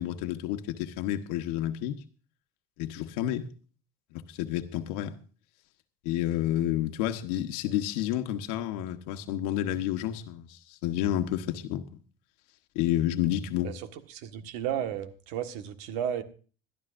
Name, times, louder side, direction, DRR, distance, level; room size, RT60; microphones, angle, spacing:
voice 1, 0.0-2.0 2.8-3.5 4.1-5.2 6.0-11.8 12.7-13.7, left 12 dB, 85° left, 1.2 m, -30 dB
voice 2, 13.6-16.2, right 9 dB, 85° right, 1.6 m, -33 dB
21.5 x 12.5 x 2.6 m
cardioid pair, 170°, 19 cm